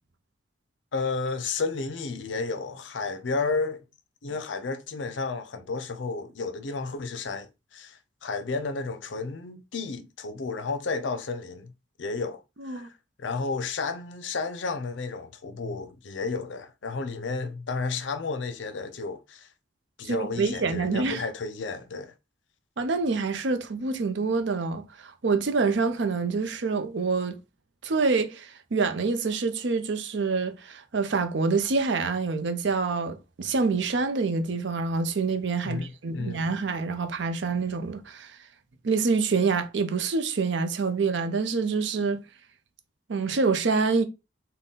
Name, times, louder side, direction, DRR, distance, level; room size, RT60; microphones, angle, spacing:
voice 1, 0.9-3.8 4.2-11.7 12.0-12.9 13.2-19.5 20.0-22.1 35.6-36.5, left 4 dB, 70° left, 0.5 m, -32 dB
voice 2, 20.0-21.2 22.8-27.4 27.8-38.4 38.8-42.2 43.1-44.0, right 4 dB, 65° right, 0.5 m, -26 dB
4.0 x 2.2 x 3.6 m
head